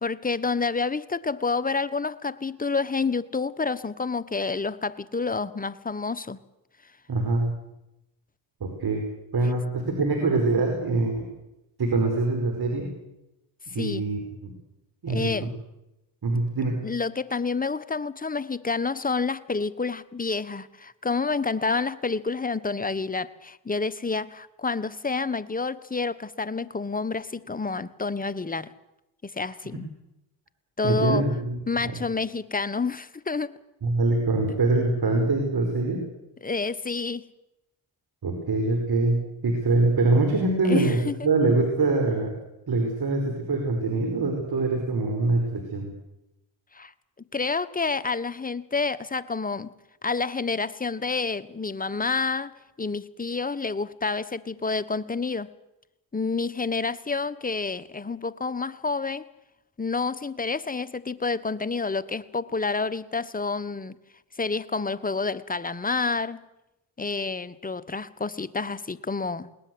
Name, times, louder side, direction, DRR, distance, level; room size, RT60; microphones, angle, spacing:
voice 1, 0.0-6.4 13.8-14.0 15.1-15.5 16.8-28.7 29.2-29.8 30.8-31.3 31.7-33.5 36.4-37.3 40.6-41.3 46.7-46.9 47.3-49.7 50.0-52.5 52.8-55.5 56.1-59.3 59.8-63.9 64.4-66.4 67.0-69.5, left 4 dB, 20° left, 14 dB, 1.2 m, -29 dB
voice 2, 7.1-7.5 8.6-9.0 9.3-11.3 11.8-12.9 13.7-14.5 15.0-15.5 16.2-16.8 30.8-32.0 33.8-36.0 38.2-42.3 42.7-45.9, right 3 dB, 50° right, 3 dB, 5.1 m, -24 dB
21.5 x 19.0 x 7.9 m, 0.91 s
supercardioid pair, 55°, 48 cm